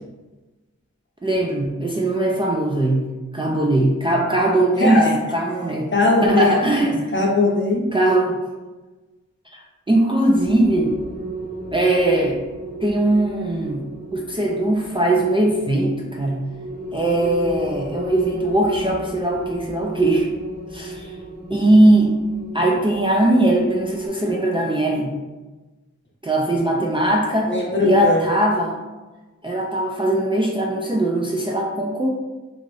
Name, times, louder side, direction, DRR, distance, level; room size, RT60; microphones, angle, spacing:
voice 1, 1.2-3.0 3.3-5.9 6.2-7.1 7.9-8.4 9.5-10.9 11.7-12.4 12.8-13.8 14.1-16.4 16.9-20.3 20.7-21.1 21.5-22.2 22.5-25.1 26.2-27.5 27.8-28.8 29.4-32.1, right 1 dB, 20° right, -3 dB, 0.4 m, -20 dB
voice 2, 4.8-5.1 5.9-7.8 27.5-28.2, left 3 dB, 40° left, -2 dB, 0.8 m, -20 dB
sound 1, 10.3-24.1, right 1 dB, 80° right, 0.9 m, -34 dB
2.5 x 2.4 x 3.2 m, 1.2 s
wide cardioid pair, 65°, 29 cm